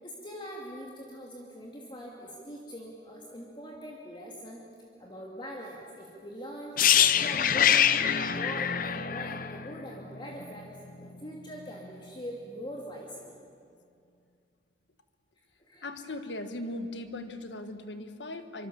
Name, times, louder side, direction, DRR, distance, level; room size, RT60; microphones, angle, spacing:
voice 1, 0.0-4.6 5.0-6.8 7.1-10.7 11.0-13.4 15.6-15.9, equal, 25° left, -2 dB, 2.4 m, -42 dB
sound 1, 6.8-10.6 10.9-11.1, left 9 dB, 50° left, 0.8 m, -25 dB
voice 2, 15.8-18.7, left 1 dB, 85° left, 8 dB, 1.6 m, -38 dB
25.0 x 24.0 x 7.1 m, 2.4 s
head